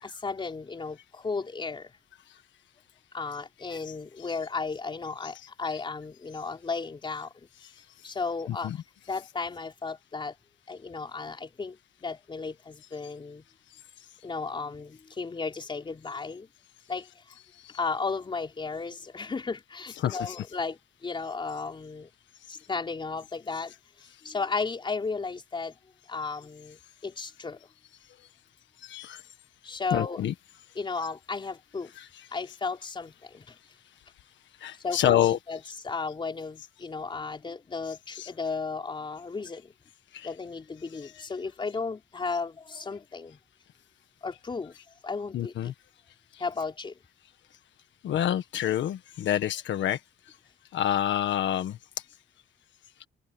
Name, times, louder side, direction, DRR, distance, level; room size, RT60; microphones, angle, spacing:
voice 1, 0.0-1.9 3.1-7.5 8.0-8.7 9.1-10.4 10.7-13.4 14.2-16.5 16.9-17.2 17.7-22.1 22.5-23.7 24.2-25.7 26.1-27.7 29.6-30.2 30.7-31.9 32.3-33.6 34.8-35.6 35.8-39.7 40.2-43.4 44.2-44.8 45.0-45.7 46.4-46.9, left 4 dB, 25° left, 4.3 m, -34 dB
voice 2, 20.0-20.4 28.8-29.2 29.9-30.3 32.0-32.1 34.6-35.4 38.1-38.3 40.1-40.3 41.0-41.1 45.3-45.7 46.3-46.4 48.0-50.0 50.7-51.8, left 11 dB, 80° left, 1.5 m, -27 dB
cardioid pair, 150°, 19 cm